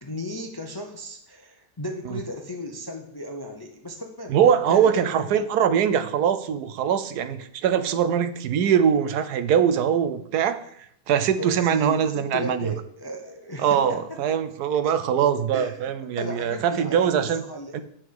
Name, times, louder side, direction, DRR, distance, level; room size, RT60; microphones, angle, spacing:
voice 1, 0.0-4.4 4.7-5.4 11.4-13.8 14.1-14.2 14.8-14.9 15.5-17.8, left 1 dB, 25° left, 3 dB, 0.5 m, -35 dB
voice 2, 4.3-10.6 11.1-12.7 13.6-17.4 17.7-17.8, right 8 dB, 80° right, 12 dB, 1.2 m, -22 dB
8.7 x 6.1 x 4.7 m, 0.69 s
omnidirectional pair, 1.6 m